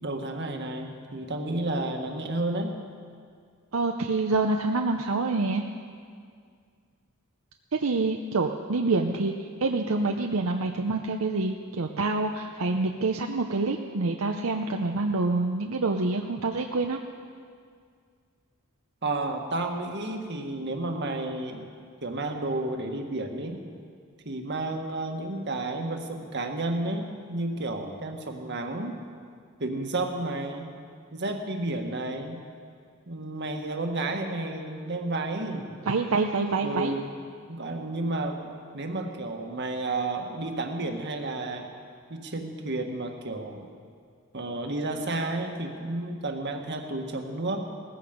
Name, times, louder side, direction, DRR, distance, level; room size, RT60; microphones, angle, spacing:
voice 1, 0.0-2.8 19.0-21.7 22.0-23.6 24.2-29.0 29.6-30.6 31.1-32.4 33.1-35.7 36.6-37.1 37.5-38.4 38.7-41.7 42.1-43.7 44.3-47.7, right 2 dB, 55° right, 4 dB, 1.6 m, -31 dB
voice 2, 3.7-5.6 7.7-17.0 35.9-36.9, right 3 dB, 75° right, 3 dB, 0.7 m, -27 dB
18.0 x 14.5 x 5.2 m, 2.1 s
head